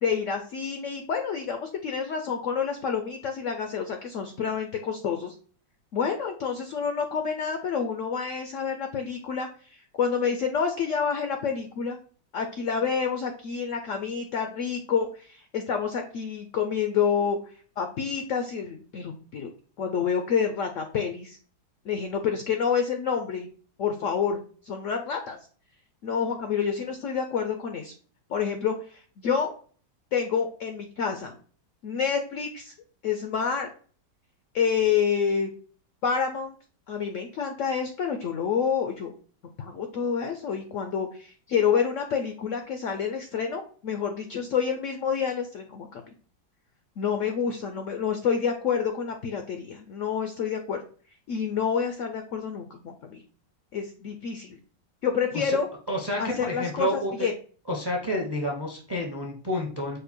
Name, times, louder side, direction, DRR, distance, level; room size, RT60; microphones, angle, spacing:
voice 1, 0.0-5.3 5.9-12.0 12.3-17.4 17.8-19.5 19.8-21.4 21.8-23.5 23.8-24.4 24.6-25.4 26.0-27.9 28.3-29.5 30.1-31.3 31.8-32.7 33.0-33.7 34.5-35.5 36.0-36.6 36.9-39.1 39.6-46.0 47.0-50.8 51.3-53.2 53.7-54.6 55.0-55.7 56.2-57.3, left 6 dB, 80° left, 6 dB, 0.6 m, -28 dB
voice 2, 55.9-57.1 57.7-60.0, equal, 30° right, 0 dB, 0.4 m, -29 dB
5.1 x 2.2 x 4.3 m, 0.43 s
omnidirectional pair, 1.9 m